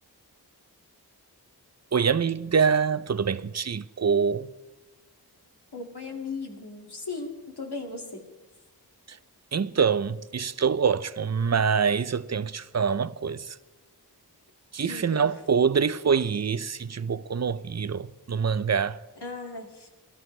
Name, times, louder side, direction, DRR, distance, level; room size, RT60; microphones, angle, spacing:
voice 1, 1.9-4.5 9.5-13.5 14.7-19.0, right 6 dB, 45° right, 0.5 m, -25 dB
voice 2, 5.7-8.2 14.8-15.4 19.2-19.9, left 3 dB, 80° left, 2.2 m, -37 dB
22.0 x 12.5 x 3.3 m
wide cardioid pair, 50°, 39 cm